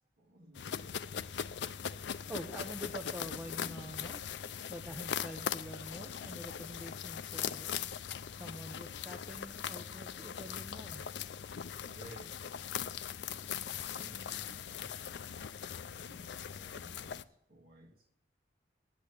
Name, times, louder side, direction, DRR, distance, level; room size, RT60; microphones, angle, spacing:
voice 1, 0.2-1.0 11.8-12.6 13.8-15.5 16.0-18.1, right 1 dB, 50° right, -1 dB, 2.3 m, -56 dB
sound 1, 0.5-17.2, left 8 dB, 70° left, 0.4 m, -40 dB
voice 2, 2.1-4.3 4.7-7.7 8.3-11.2, equal, 10° right, 2 dB, 0.7 m, -46 dB
9.2 x 8.6 x 8.6 m, 0.78 s
head